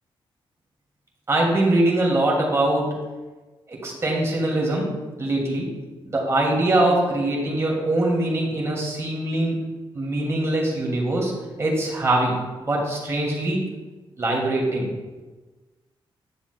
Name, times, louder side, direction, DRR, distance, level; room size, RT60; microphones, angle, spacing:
voice 1, 1.3-2.9 3.7-4.9 5.2-5.7 6.1-9.6 9.9-11.3 11.6-13.6 14.2-14.9, right 1 dB, 30° right, -3 dB, 2.4 m, -22 dB
10.5 x 7.0 x 2.3 m, 1.2 s
cardioid pair, 110°, 9 cm